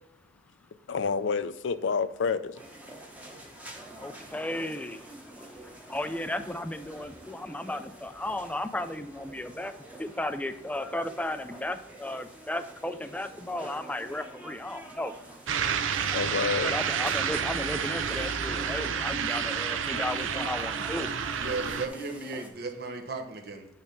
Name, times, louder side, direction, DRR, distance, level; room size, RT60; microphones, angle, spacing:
voice 1, 0.9-2.6 16.1-16.8, left 5 dB, 70° left, 0.4 m, -28 dB
sound 1, 2.5-22.5, right 1 dB, 10° right, 1.0 m, -48 dB
voice 2, 4.0-5.0 5.9-9.7 10.0-15.1 16.1-21.1, left 1 dB, 5° left, 0.3 m, -34 dB
sound 2, 15.5-21.9, right 7 dB, 90° right, 0.5 m, -30 dB
voice 3, 21.4-23.7, right 3 dB, 55° right, 1.0 m, -35 dB
8.9 x 3.4 x 5.9 m
head